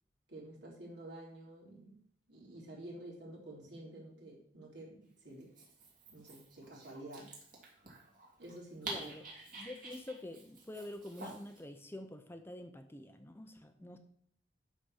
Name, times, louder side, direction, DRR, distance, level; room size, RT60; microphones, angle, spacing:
voice 1, 0.3-1.9 2.3-5.5 6.1-7.3 8.4-9.1 13.8-14.0, right 1 dB, 75° right, -4 dB, 4.0 m, -50 dB
Dog, 5.4-11.6, right 2 dB, 50° right, 2.7 m, -49 dB
voice 2, 8.9-9.2 9.6-14.0, left 1 dB, 15° left, 7 dB, 0.7 m, -47 dB
11.5 x 4.3 x 6.4 m, 0.63 s
head